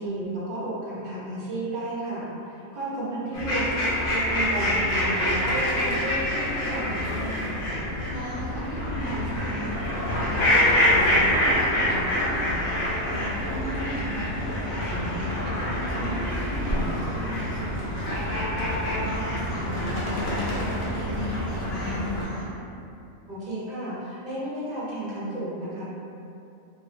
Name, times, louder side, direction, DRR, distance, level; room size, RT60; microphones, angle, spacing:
voice 1, 0.0-7.5 23.3-25.8, right 1 dB, 55° right, -8 dB, 0.5 m, -33 dB
voice 2, 2.9-3.3 8.1-9.7 10.0-12.6 13.0-15.3 15.7-18.4 18.8-22.5, equal, 40° left, -11 dB, 0.7 m, -36 dB
sound 1, 3.3-22.3, left 1 dB, 70° left, 0.9 m, -26 dB
2.4 x 2.0 x 2.4 m, 2.6 s
omnidirectional pair, 1.4 m